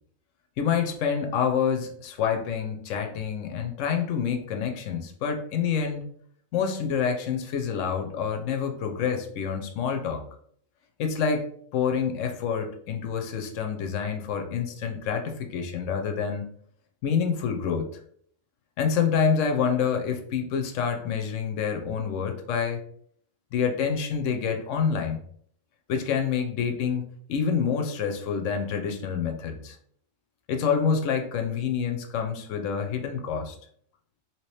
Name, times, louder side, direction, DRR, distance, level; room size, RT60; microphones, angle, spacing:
voice 1, 0.6-6.1 6.5-10.2 11.0-11.5 11.7-16.5 17.0-17.9 18.8-22.8 23.5-25.2 25.9-29.8 30.5-33.6, left 6 dB, 70° left, 5 dB, 0.9 m, -27 dB
3.1 x 2.9 x 3.1 m, 0.62 s
omnidirectional pair, 1.4 m